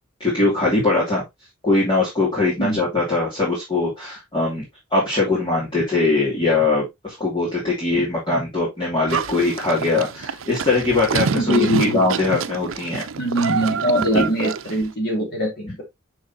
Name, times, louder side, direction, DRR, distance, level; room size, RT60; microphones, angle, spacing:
voice 1, 0.2-1.2 1.6-4.7 4.9-13.0 14.1-14.3, left 3 dB, 25° left, -6 dB, 2.7 m, -21 dB
Livestock farm animals working animals, 9.1-14.9, right 6 dB, 75° right, 0.5 m, -27 dB
voice 2, 11.4-12.0 13.2-15.8, equal, 50° left, 1 dB, 2.4 m, -22 dB
6.4 x 6.2 x 2.8 m, 0.19 s
head